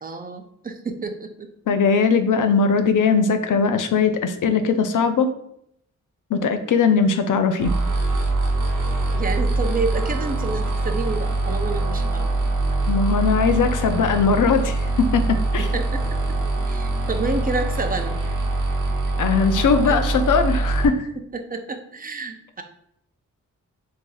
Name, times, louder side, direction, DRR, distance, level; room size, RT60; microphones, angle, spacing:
voice 1, 0.0-1.5 9.1-12.5 15.6-16.0 16.7-18.2 19.8-20.0 21.3-22.6, right 3 dB, 30° right, 6 dB, 0.5 m, -29 dB
voice 2, 1.7-5.3 6.3-7.7 12.9-15.7 19.2-21.1, left 5 dB, 80° left, 8 dB, 0.5 m, -20 dB
sound 1, 7.6-20.9, right 2 dB, 75° right, 0.8 m, -23 dB
6.2 x 2.8 x 2.3 m, 0.74 s
wide cardioid pair, 105°, 31 cm